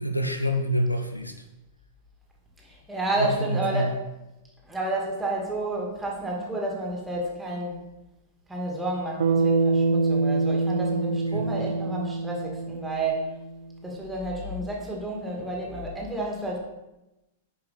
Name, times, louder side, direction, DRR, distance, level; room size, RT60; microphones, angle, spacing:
voice 1, 0.0-1.4 3.2-3.9 11.3-11.5, equal, 90° left, 7 dB, 0.8 m, -27 dB
voice 2, 2.6-4.0 4.7-7.8 8.5-13.4 13.8-16.6, right 2 dB, 10° right, -2 dB, 2.3 m, -30 dB
Bass guitar, 9.2-13.6, right 4 dB, 65° right, 1.0 m, -25 dB
9.8 x 5.4 x 4.2 m, 0.97 s
figure-of-eight pair, 100°, 0 cm